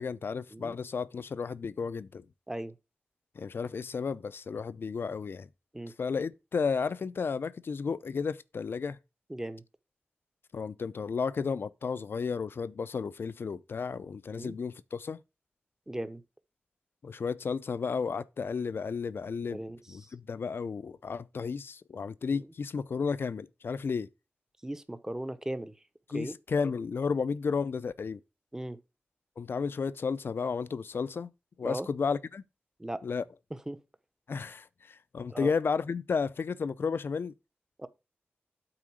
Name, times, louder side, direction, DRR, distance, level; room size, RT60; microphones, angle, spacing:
voice 1, 0.0-2.3 3.4-5.5 6.0-9.0 10.5-15.2 17.0-19.6 19.9-24.1 26.1-28.2 29.4-31.3 31.6-32.4 33.0-33.2 34.3-37.3, left 5 dB, 65° left, 0.5 m, -33 dB
voice 2, 9.3-9.6 14.3-14.5 15.9-16.2 19.5-20.1 22.3-22.5 24.6-25.7 26.1-26.4 28.5-28.8 31.6-31.9 32.8-33.1 33.5-33.8 35.3-35.5 37.8-37.9, right 1 dB, 15° right, 0.8 m, -38 dB
8.8 x 3.8 x 6.3 m
wide cardioid pair, 75°, 4 cm